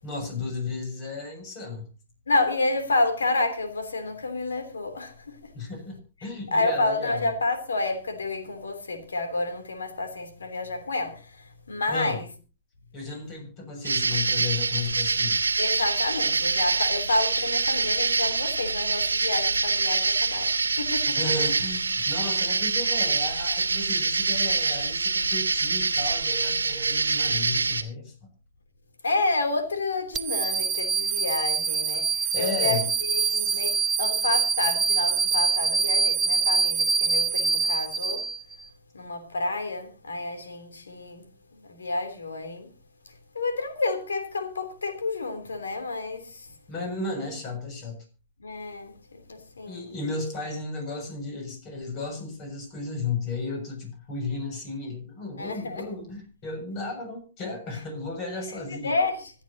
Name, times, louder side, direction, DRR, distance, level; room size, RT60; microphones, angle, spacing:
voice 1, 0.0-1.8 5.5-7.3 11.9-12.2 12.9-15.4 21.1-28.3 32.3-32.8 33.3-33.6 46.7-48.0 49.7-59.0, left 3 dB, 35° left, 7.0 m, -34 dB
voice 2, 2.3-5.5 6.5-12.3 15.6-21.2 29.0-38.2 38.9-41.2 41.6-42.7 43.3-46.5 48.4-49.8 55.4-55.8 58.5-59.3, left 2 dB, 80° left, 3.2 m, -29 dB
sound 1, 13.8-27.8, right 4 dB, 85° right, 1.5 m, -25 dB
sound 2, 30.1-38.6, right 5 dB, 20° right, 0.6 m, -25 dB
25.5 x 8.9 x 2.9 m
figure-of-eight pair, 115°, 0 cm